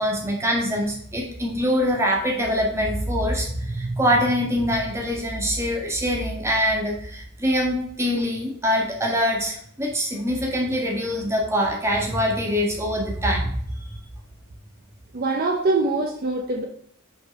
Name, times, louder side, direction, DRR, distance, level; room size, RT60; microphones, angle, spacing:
voice 1, 0.0-13.5, equal, 15° right, -1 dB, 1.5 m, -24 dB
voice 2, 15.1-16.6, right 3 dB, 45° right, 1 dB, 0.7 m, -23 dB
5.8 x 3.9 x 5.2 m, 0.65 s
head